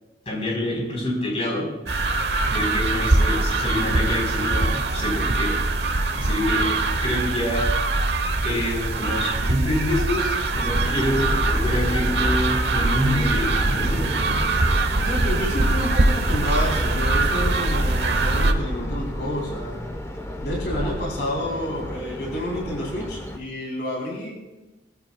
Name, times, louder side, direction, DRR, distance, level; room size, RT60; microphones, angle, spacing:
voice 1, 0.3-1.7 2.5-5.6 6.1-6.7 7.0-7.7 8.4-14.1, left 1 dB, 35° left, -2 dB, 4.3 m, -26 dB
sound 1, 1.9-18.5, right 2 dB, 65° right, 1.1 m, -23 dB
sound 2, 10.5-23.4, equal, 15° left, 1.0 m, -30 dB
voice 2, 13.8-14.4 15.0-19.9 20.4-24.3, left 1 dB, 65° left, -2 dB, 4.1 m, -29 dB
21.0 x 14.5 x 2.4 m, 1.1 s
head